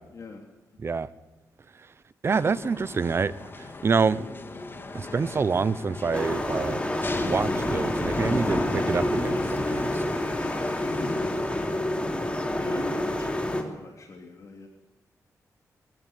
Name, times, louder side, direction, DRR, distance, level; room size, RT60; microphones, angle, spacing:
voice 1, 0.1-0.5 10.8-11.2 12.3-14.7, left 3 dB, 60° left, 3 dB, 3.1 m, -41 dB
voice 2, 2.2-3.3 3.8-4.2 4.9-6.8 7.2-9.9, right 5 dB, 45° right, 16 dB, 1.0 m, -26 dB
sound 1, 2.3-11.8, left 3 dB, 35° left, 2.4 m, -39 dB
sound 2, 6.1-13.6, left 1 dB, 20° left, 3.4 m, -28 dB
22.5 x 15.5 x 9.2 m, 1.0 s
cardioid pair, 95°, 6 cm